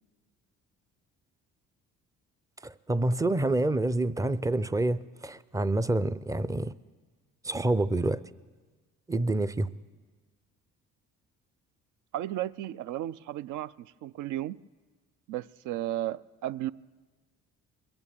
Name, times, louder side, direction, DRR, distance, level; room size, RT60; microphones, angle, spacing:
voice 1, 2.6-6.7 7.4-8.2 9.1-9.7, right 2 dB, 10° right, 0.5 m, -27 dB
voice 2, 12.1-14.6 15.3-16.7, right 13 dB, 65° right, 0.5 m, -34 dB
21.5 x 8.9 x 7.2 m
supercardioid pair, 65°, 33 cm